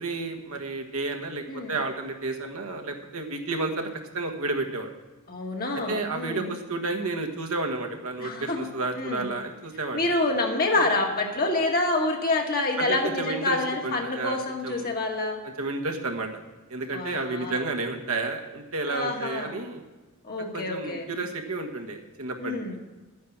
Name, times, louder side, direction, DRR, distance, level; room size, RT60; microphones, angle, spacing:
voice 1, 0.0-4.9 5.9-10.1 10.8-10.9 12.8-14.4 14.6-14.9 15.4-16.3 16.7-19.8 20.4-22.6, right 3 dB, 65° right, 3 dB, 1.5 m, -31 dB
voice 2, 5.3-6.5 8.2-8.7 9.0-9.3 9.9-15.4 16.9-17.6 18.9-19.5 20.3-21.1 22.4-22.7, left 2 dB, 40° left, 2 dB, 1.7 m, -27 dB
11.5 x 9.4 x 6.0 m, 1.2 s
head